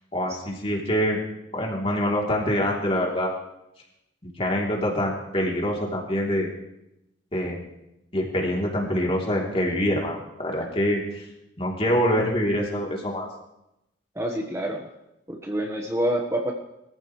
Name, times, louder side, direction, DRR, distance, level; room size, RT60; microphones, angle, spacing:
voice 1, 0.1-1.2 1.5-3.3 4.4-6.5 7.3-7.6 8.1-11.2 11.6-13.3, equal, 30° left, -1 dB, 3.3 m, -25 dB
voice 2, 14.1-14.9 15.3-16.5, right 1 dB, 15° right, 1 dB, 1.3 m, -27 dB
22.0 x 14.5 x 3.3 m, 0.87 s
head